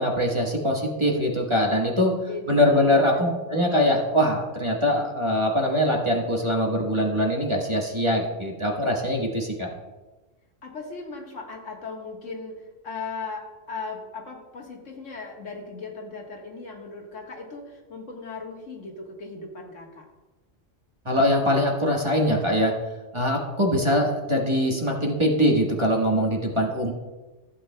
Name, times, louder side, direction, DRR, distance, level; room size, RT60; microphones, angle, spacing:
voice 1, 0.0-2.1 2.5-9.7 21.0-22.7 23.1-26.9, equal, 25° right, -1 dB, 1.3 m, -23 dB
voice 2, 2.3-3.2 10.6-20.1, left 3 dB, 80° left, 0 dB, 1.8 m, -37 dB
15.0 x 8.5 x 2.2 m, 1.2 s
omnidirectional pair, 1.3 m